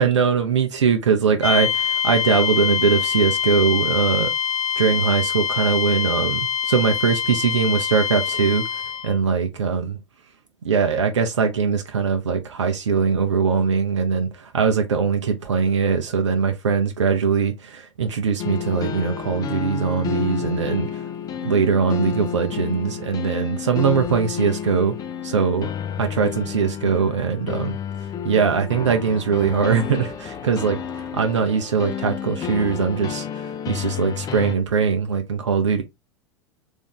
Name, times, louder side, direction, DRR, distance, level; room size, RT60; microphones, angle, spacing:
voice 1, 0.0-4.3 4.8-10.0 10.6-21.0 21.4-25.0 25.2-25.7 26.0-27.8 28.2-35.8, right 6 dB, 75° right, 0.7 m, -21 dB
sound 1, 1.4-9.1, left 7 dB, 75° left, 0.9 m, -24 dB
sound 2, 18.4-34.6, left 8 dB, 25° left, 0.5 m, -30 dB
3.5 x 2.7 x 3.5 m
figure-of-eight pair, 85°, 16 cm